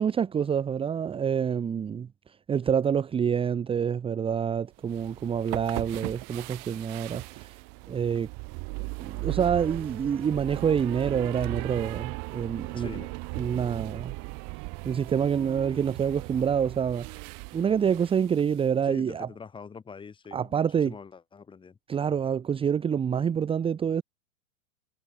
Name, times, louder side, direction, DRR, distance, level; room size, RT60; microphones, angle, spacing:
voice 1, 0.0-7.6 7.9-8.3 9.0-12.9 13.4-14.1 14.8-17.2 17.5-19.3 20.3-20.9 21.9-24.0, right 7 dB, 15° right, 1.4 m, -27 dB
sound 1, 4.8-18.7, right 31 dB, 40° right, 4.2 m, -38 dB
voice 2, 12.7-13.1 18.8-21.8, left 5 dB, 10° left, 3.5 m, -44 dB
hypercardioid pair, 140°, 40 cm